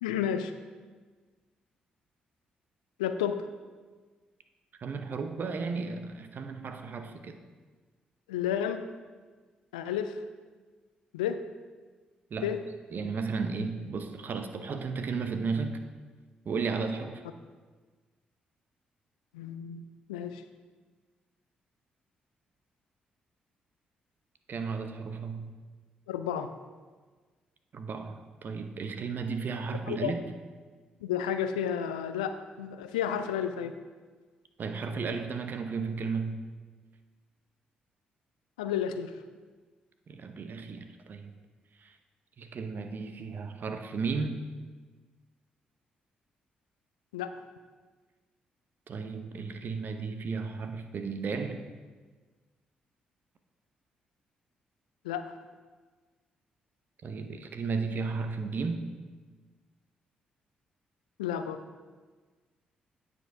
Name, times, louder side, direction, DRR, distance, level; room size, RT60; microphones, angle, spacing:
voice 1, 0.0-0.5 3.0-3.5 8.3-8.9 9.7-10.2 11.1-11.4 12.4-12.6 19.3-19.8 20.1-20.4 26.1-26.5 29.9-30.1 31.0-33.8 38.6-39.1 47.1-47.3 55.0-55.3 61.2-61.6, left 9 dB, 85° left, 9 dB, 0.4 m, -31 dB
voice 2, 4.8-7.4 12.3-12.6 12.9-15.8 16.4-17.2 24.5-25.6 27.7-30.3 34.6-36.4 40.1-41.3 41.8-42.0 42.4-44.5 48.9-51.6 57.0-58.9, right 4 dB, 50° right, 7 dB, 0.8 m, -34 dB
9.1 x 5.5 x 4.6 m, 1.4 s
hypercardioid pair, 40°, 4 cm